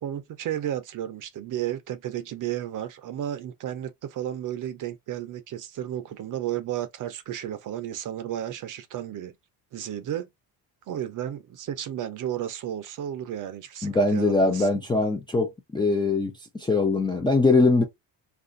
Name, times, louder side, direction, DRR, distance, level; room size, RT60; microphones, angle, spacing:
voice 1, 0.0-9.3 9.7-10.3 10.9-14.7, right 11 dB, 45° right, 0.6 m, -33 dB
voice 2, 13.8-16.3 16.6-17.8, left 3 dB, 10° left, 0.4 m, -22 dB
2.5 x 2.4 x 3.7 m
cardioid pair, 135°, 44 cm